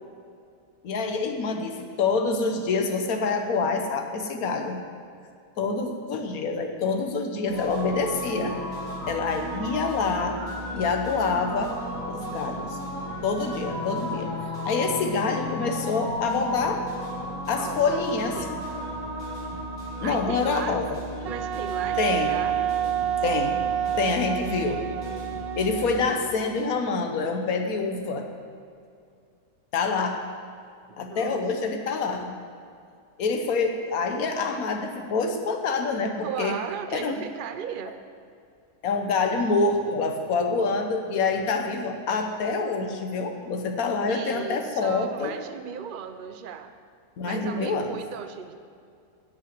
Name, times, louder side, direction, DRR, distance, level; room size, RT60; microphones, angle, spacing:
voice 1, 0.8-4.8 5.6-8.6 9.1-10.4 10.7-11.7 12.1-12.8 13.2-14.3 14.6-16.8 17.5-18.4 20.0-21.0 22.0-22.3 23.2-23.6 24.0-24.8 25.6-28.3 29.7-30.2 31.0-32.4 33.2-36.6 36.9-37.2 38.8-45.3 47.2-48.0, left 4 dB, 75° left, 4 dB, 1.5 m, -26 dB
sound 1, 7.5-26.1, left 1 dB, 65° right, 4.2 m, -34 dB
voice 2, 17.5-18.1 18.3-18.5 20.0-20.8 21.2-22.8 30.9-31.7 36.2-38.0 44.1-46.7 47.2-48.5, right 7 dB, 45° right, 8 dB, 0.8 m, -36 dB
Wind instrument woodwind instrument, 21.3-26.7, right 11 dB, 85° right, 0.5 m, -29 dB
12.0 x 8.6 x 7.7 m, 2.4 s
omnidirectional pair, 1.6 m